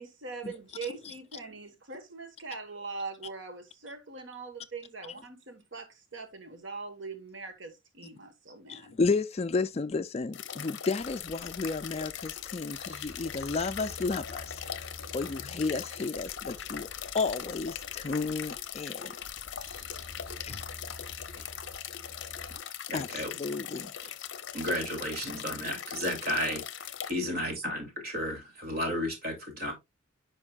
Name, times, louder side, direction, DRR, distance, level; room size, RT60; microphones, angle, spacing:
voice 1, 0.0-9.0, right 4 dB, 60° right, 1.3 m, -42 dB
voice 2, 8.7-16.9 17.1-19.1 20.4-20.6 22.9-23.9, left 4 dB, 30° left, 0.3 m, -32 dB
sound 1, 10.3-27.1, left 9 dB, 55° left, 0.7 m, -40 dB
sound 2, 11.0-22.6, equal, 80° right, 3.7 m, -49 dB
voice 3, 22.9-23.3 24.5-29.7, equal, 45° right, 2.5 m, -33 dB
9.7 x 5.3 x 2.3 m
head